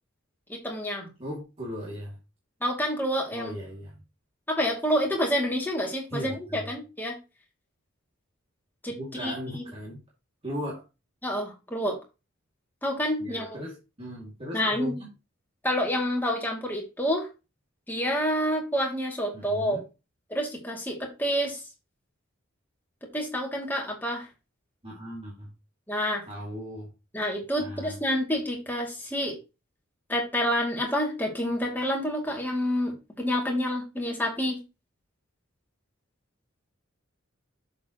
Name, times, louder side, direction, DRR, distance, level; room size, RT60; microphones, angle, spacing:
voice 1, 0.5-1.1 2.6-3.5 4.5-7.2 8.8-9.7 11.2-12.0 12.8-13.6 14.5-14.9 15.6-17.3 17.9-19.8 20.3-21.6 23.1-24.3 25.9-26.2 27.1-29.4 30.1-34.6, equal, 10° left, 2.5 m, -28 dB
voice 2, 1.2-2.2 3.3-4.0 6.1-6.6 8.9-10.0 10.4-10.8 13.2-15.1 19.3-19.8 24.8-25.5 26.3-26.9 27.6-27.9, equal, 30° right, 2.4 m, -37 dB
7.7 x 7.0 x 3.0 m
head